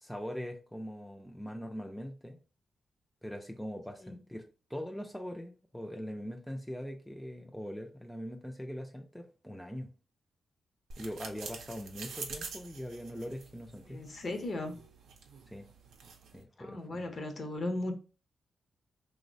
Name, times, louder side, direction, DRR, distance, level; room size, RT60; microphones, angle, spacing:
voice 1, 0.0-2.4 3.2-9.9 11.0-14.0 15.5-15.7 16.3-17.1, equal, 5° left, 0.4 m, -42 dB
sound 1, 10.9-16.4, right 5 dB, 85° right, 0.5 m, -47 dB
voice 2, 13.9-14.7 16.6-17.9, left 2 dB, 50° left, 0.6 m, -36 dB
3.0 x 2.0 x 2.6 m
cardioid pair, 85°, 0 cm